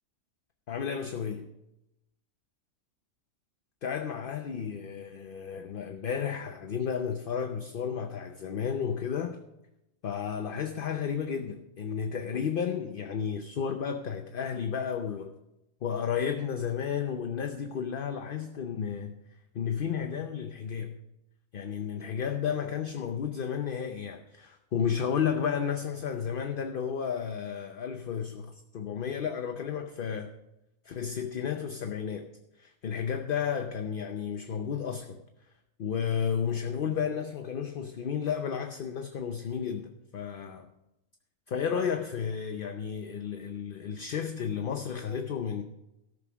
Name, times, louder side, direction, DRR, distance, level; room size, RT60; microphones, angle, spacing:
voice 1, 0.7-1.5 3.8-9.4 10.0-15.3 15.8-19.2 19.5-21.0 21.5-30.4 30.8-32.3 32.6-35.2 35.8-40.7 41.5-45.6, left 7 dB, 50° left, 0.7 m, -32 dB
13.5 x 6.4 x 6.0 m
omnidirectional pair, 1.5 m